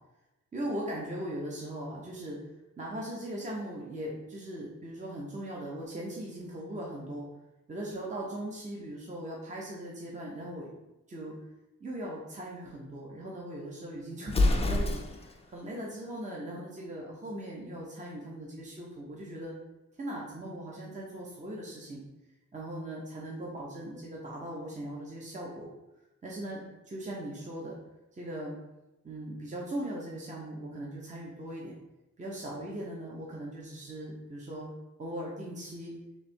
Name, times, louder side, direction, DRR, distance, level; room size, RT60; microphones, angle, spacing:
voice 1, 0.5-2.5 2.8-7.3 7.7-10.7 11.1-11.4 11.8-19.5 20.0-22.0 22.5-25.7 26.2-27.8 28.1-28.6 29.0-31.7 32.2-34.7 35.0-35.9, right 1 dB, 25° right, -3 dB, 0.7 m, -39 dB
Explosion, 14.2-15.4, left 2 dB, 20° left, 0.4 m, -26 dB
3.5 x 3.3 x 4.1 m, 0.99 s
wide cardioid pair, 145°, 29 cm